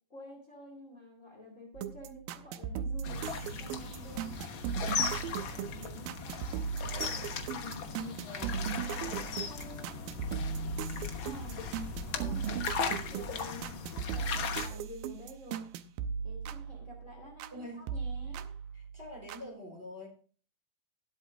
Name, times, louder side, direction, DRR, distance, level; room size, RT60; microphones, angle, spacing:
voice 1, 0.1-3.2 3.6-4.4 5.5-6.7 7.5-8.3 9.0-9.9 11.2-11.7 12.1-15.6 16.2-18.5, left 1 dB, 25° left, 0 dB, 2.6 m, -49 dB
sound 1, 1.8-17.6 17.9-19.4, right 7 dB, 85° right, 2.4 m, -38 dB
sound 2, 3.0-14.7, left 5 dB, 90° left, 1.1 m, -37 dB
voice 2, 6.8-7.3 8.2-8.7 11.9-12.4 17.5-17.8 18.7-20.1, left 1 dB, 15° right, -1 dB, 3.8 m, -46 dB
19.5 x 8.1 x 2.5 m, 0.41 s
omnidirectional pair, 4.2 m